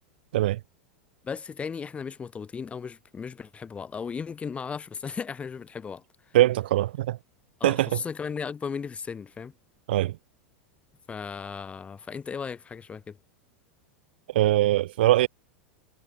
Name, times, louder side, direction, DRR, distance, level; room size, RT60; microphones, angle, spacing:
voice 1, 1.2-6.0 7.6-9.5 11.1-13.2, left 6 dB, 20° left, 2.5 m, -36 dB
voice 2, 6.3-7.2 7.6-8.0 9.9-10.2 14.3-15.3, right 15 dB, 65° right, 2.6 m, -22 dB
figure-of-eight pair, 90°, 6 cm